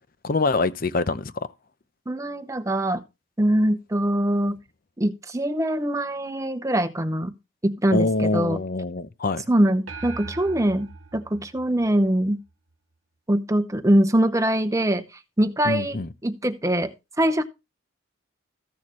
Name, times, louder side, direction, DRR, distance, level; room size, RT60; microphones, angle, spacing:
voice 1, 0.2-1.3 7.9-9.4 15.6-16.1, left 3 dB, 45° left, 0.7 m, -24 dB
voice 2, 2.1-3.0 3.4-4.6 5.0-7.3 7.6-8.6 9.5-12.4 13.3-15.0 15.4-17.4, right 1 dB, 15° right, 0.8 m, -23 dB
sound 1, 9.9-12.5, right 3 dB, 85° right, 1.2 m, -40 dB
14.5 x 6.4 x 3.1 m
head